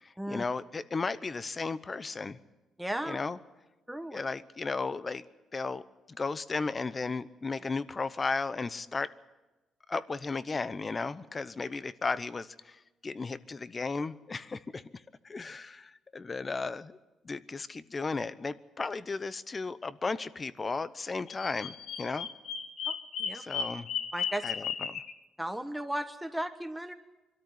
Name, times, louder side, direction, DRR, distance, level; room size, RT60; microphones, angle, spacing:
voice 1, 0.0-2.4 3.0-3.4 4.1-5.3 5.5-9.1 9.9-14.8 15.2-17.0 17.2-22.3 23.3-23.9 24.4-25.0, left 4 dB, 30° left, 16 dB, 0.9 m, -35 dB
voice 2, 2.8-3.2 3.9-4.2 9.9-10.0 23.2-23.4 24.1-24.4 25.4-26.9, right 1 dB, 5° right, 8 dB, 1.4 m, -35 dB
Bird vocalization bird call bird song, 21.3-25.1, left 7 dB, 75° left, 1.3 m, -35 dB
23.5 x 13.0 x 9.8 m, 1.1 s
cardioid pair, 90°, 0 cm